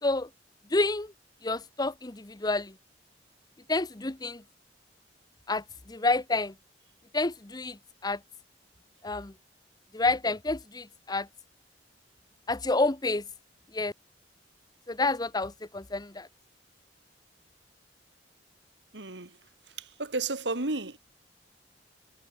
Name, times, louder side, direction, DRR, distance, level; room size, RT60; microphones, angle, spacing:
voice 1, 0.7-1.1 1.4-2.7 3.7-4.4 5.5-6.5 7.1-8.2 9.0-9.3 9.9-11.3 12.5-13.2 13.7-13.9 14.9-16.3, left 2 dB, 20° left, 0.9 m, -29 dB
voice 2, 18.9-19.4 19.8-21.0, right 3 dB, 75° right, 2.4 m, -32 dB
head